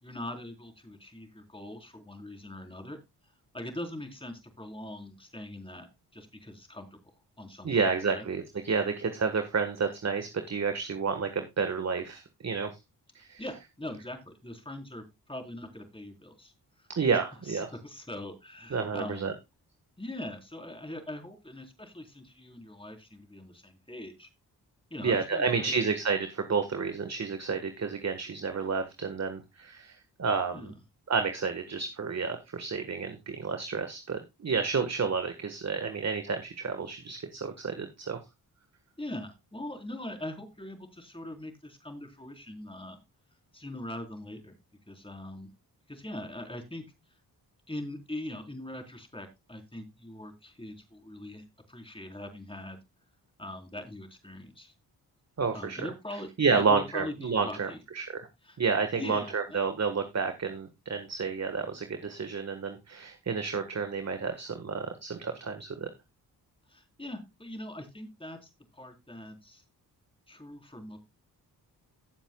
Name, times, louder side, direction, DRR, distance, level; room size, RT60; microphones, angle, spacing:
voice 1, 0.0-3.0 3.5-5.9 6.1-7.0 7.4-8.2 13.4-16.5 17.1-19.3 20.0-24.3 24.9-25.8 30.5-30.8 39.0-43.0 43.5-44.6 44.9-45.5 45.9-46.8 47.7-52.8 53.4-54.7 55.5-57.8 58.4-58.6 59.0-59.6 66.7-69.6 70.3-71.0, left 1 dB, 15° left, 4 dB, 3.9 m, -42 dB
voice 2, 7.6-12.7 13.1-13.4 16.9-17.7 18.7-19.3 25.0-30.7 31.1-38.2 55.4-55.8 56.4-58.3 58.6-65.9, right 5 dB, 40° right, 8 dB, 1.5 m, -30 dB
16.5 x 7.2 x 2.3 m, 0.23 s
supercardioid pair, 50°, 40 cm